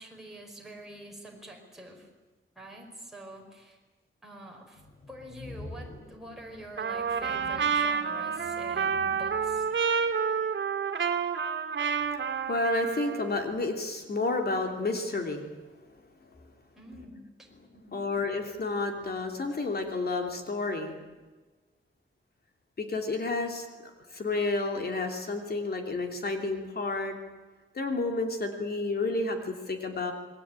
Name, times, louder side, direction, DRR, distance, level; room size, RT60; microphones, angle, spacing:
voice 1, 0.0-2.1 2.6-3.8 4.2-4.8 5.1-9.7 16.8-18.1, right 1 dB, ahead, -1 dB, 5.3 m, -46 dB
sound 1, 4.8-10.1, left 2 dB, 85° left, 6.9 m, -48 dB
Trumpet, 6.8-13.4, right 6 dB, 65° right, 2.5 m, -29 dB
voice 2, 12.2-15.4 17.9-21.0 22.8-27.1 27.7-30.1, left 3 dB, 50° left, 4 dB, 3.1 m, -31 dB
28.0 x 20.5 x 9.0 m, 1.3 s
wide cardioid pair, 170°, 21 cm